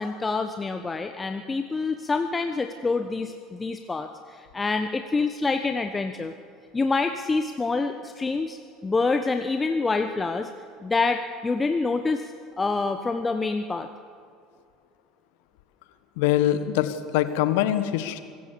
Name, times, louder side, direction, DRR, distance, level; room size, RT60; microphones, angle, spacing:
voice 1, 0.0-6.3 6.7-10.5 10.8-13.9, left 3 dB, 20° left, 7 dB, 1.1 m, -27 dB
voice 2, 16.2-18.2, left 12 dB, 65° left, 11 dB, 1.3 m, -23 dB
25.0 x 15.5 x 7.0 m, 2.3 s
figure-of-eight pair, 70°, 0 cm